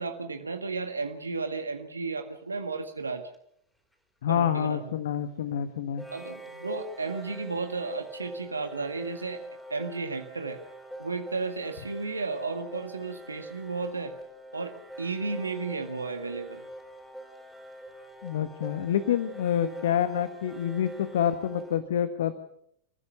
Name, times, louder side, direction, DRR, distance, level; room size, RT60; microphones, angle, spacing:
voice 1, 0.0-3.3 4.3-4.9 6.1-9.4 9.7-10.6 11.0-14.1 14.5-16.6, right 4 dB, 80° right, 6 dB, 1.7 m, -33 dB
sound 1, 3.3-3.4 6.0-21.8, right 1 dB, ahead, 4.8 m, -44 dB
voice 2, 4.2-6.0 18.2-22.3, left 9 dB, 60° left, 11 dB, 1.3 m, -27 dB
29.5 x 15.5 x 6.8 m, 0.72 s
figure-of-eight pair, 90°, 0 cm